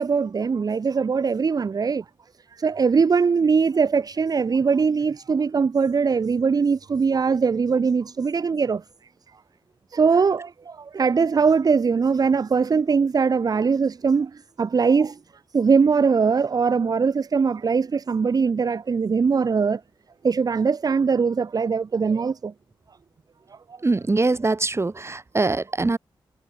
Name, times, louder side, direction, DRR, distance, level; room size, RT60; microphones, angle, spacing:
voice 1, 0.0-2.0 2.5-8.8 9.9-15.2 15.5-19.8 20.2-22.5, right 5 dB, 45° right, 0.6 m, -21 dB
voice 2, 23.8-26.0, right 3 dB, 30° right, 1.4 m, -23 dB
cardioid pair, 55°, 9 cm